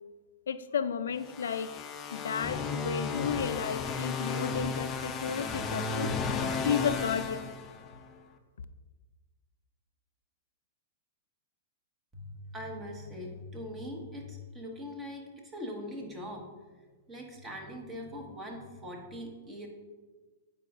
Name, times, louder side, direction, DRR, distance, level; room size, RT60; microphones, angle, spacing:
voice 1, 0.5-1.7 2.1-6.1 6.4-7.5, left 7 dB, 85° left, 12 dB, 0.4 m, -33 dB
sound 1, 1.2-8.1, left 4 dB, 25° left, 0.5 m, -34 dB
voice 2, 12.1-16.5 17.1-19.7, left 1 dB, 20° right, 1 dB, 1.2 m, -41 dB
8.8 x 4.8 x 2.4 m, 1.3 s
hypercardioid pair, 130°, 0 cm